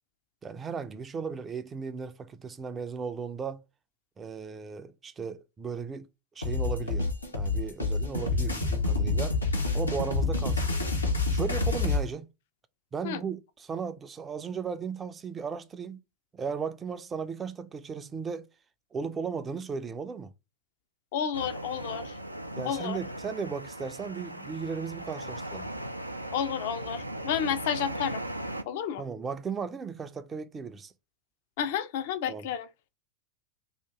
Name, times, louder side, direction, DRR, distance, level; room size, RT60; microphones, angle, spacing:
voice 1, 0.4-3.6 4.2-6.1 6.4-9.4 9.7-10.8 11.3-12.3 12.9-16.0 16.3-18.5 18.9-20.3 22.5-25.7 29.0-30.9 32.3-32.5, right 5 dB, 20° right, 0.4 m, -36 dB
sound 1, 6.4-12.0, left 3 dB, 80° left, 0.8 m, -28 dB
voice 2, 21.1-22.1 22.6-23.0 26.3-28.2 28.7-29.0 31.6-32.7, left 8 dB, 50° left, 0.5 m, -31 dB
sound 2, 21.3-28.6, right 1 dB, 85° right, 0.4 m, -38 dB
2.8 x 2.5 x 3.5 m
figure-of-eight pair, 90°, 0 cm